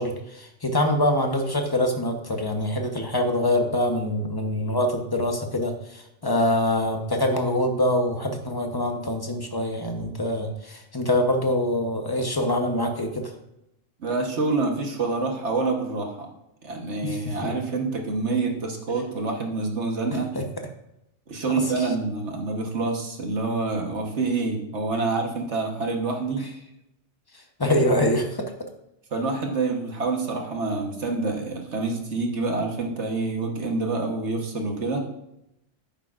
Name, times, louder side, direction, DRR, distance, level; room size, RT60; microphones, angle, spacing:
voice 1, 0.0-13.3 17.0-17.5 20.3-20.5 27.6-28.4, left 1 dB, 20° left, 4 dB, 0.9 m, -24 dB
voice 2, 14.0-16.3 16.6-20.3 21.3-26.5 29.1-35.1, right 3 dB, 65° right, 2 dB, 1.5 m, -27 dB
11.0 x 9.1 x 2.5 m, 0.84 s
omnidirectional pair, 1.3 m